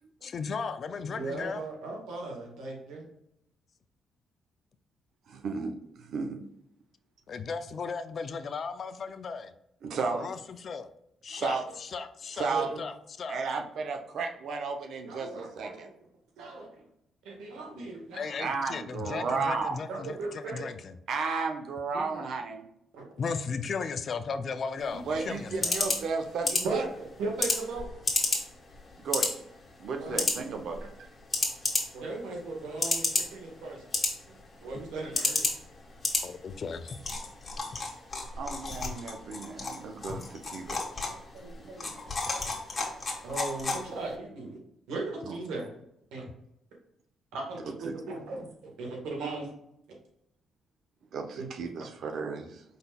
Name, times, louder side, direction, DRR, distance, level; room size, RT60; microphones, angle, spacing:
voice 1, 0.2-1.6 7.3-9.5 10.2-10.9 11.2-12.5 12.8-13.4 18.1-21.0 23.2-25.8 36.2-37.0, left 5 dB, 50° left, 10 dB, 0.5 m, -36 dB
voice 2, 1.1-3.1 10.1-10.3 12.5-12.8 15.0-15.9 16.4-16.7 17.2-18.5 19.9-20.6 22.1-22.2 22.9-23.0 25.1-25.2 26.6-26.9 27.2-27.9 30.0-30.2 30.8-30.9 31.9-33.8 34.6-35.4 39.6-39.7 41.3-42.1 43.2-44.6 44.9-45.7 46.1-46.2 47.3-48.5 48.8-49.5 51.4-51.5, right 3 dB, 90° right, 0 dB, 1.6 m, -37 dB
voice 3, 5.3-6.4 9.8-10.2 11.3-11.6 12.3-12.7 13.3-15.9 18.4-19.8 21.1-22.6 25.0-26.9 29.0-29.3 29.8-30.8 38.4-40.8 41.8-41.9 45.2-45.4 47.6-47.9 51.1-52.6, right 4 dB, 70° right, 5 dB, 0.8 m, -33 dB
sound 1, 24.8-44.2, left 3 dB, 30° left, 1.5 m, -33 dB
5.2 x 4.1 x 2.4 m, 0.78 s
cardioid pair, 90°, 0 cm